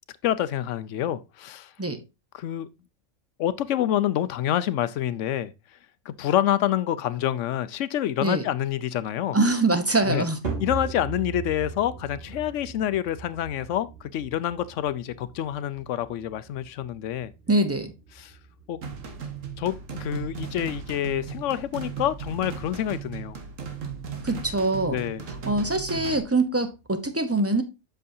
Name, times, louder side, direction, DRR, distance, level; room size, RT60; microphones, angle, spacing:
voice 1, 0.2-1.7 2.3-2.7 3.4-5.5 6.1-9.4 10.0-10.2 10.6-17.3 18.2-18.4 18.7-18.8 19.6-23.4 24.9-25.2, left 11 dB, 75° left, 0.9 m, -27 dB
voice 2, 9.3-10.4 17.5-17.9 24.2-25.0 25.5-27.6, right 2 dB, 15° right, 0.7 m, -23 dB
sound 1, 10.4-26.9, right 5 dB, 50° right, 2.4 m, -41 dB
sound 2, 18.8-26.2, right 6 dB, 80° right, 1.6 m, -36 dB
7.8 x 6.4 x 2.7 m
omnidirectional pair, 1.3 m